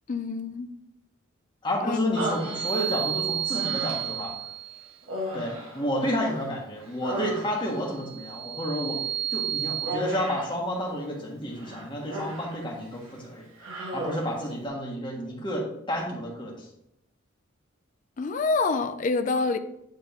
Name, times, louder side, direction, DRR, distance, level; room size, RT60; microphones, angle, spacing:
voice 1, 0.1-0.7 1.8-2.1 18.2-19.6, left 3 dB, 40° left, 9 dB, 0.4 m, -26 dB
voice 2, 1.6-4.4 5.3-9.0 9.3-13.4 13.9-16.7, equal, 25° left, -1 dB, 1.4 m, -30 dB
Human voice, 2.2-3.1 3.5-4.3 5.0-6.5 6.8-7.9 9.9-10.6 11.6-12.6 12.9-13.2 13.6-14.4, right 1 dB, 85° right, 1.6 m, -35 dB
sound 1, 2.3-4.9 7.8-9.9, right 10 dB, 55° right, 0.8 m, -31 dB
9.0 x 3.7 x 3.5 m, 0.81 s
head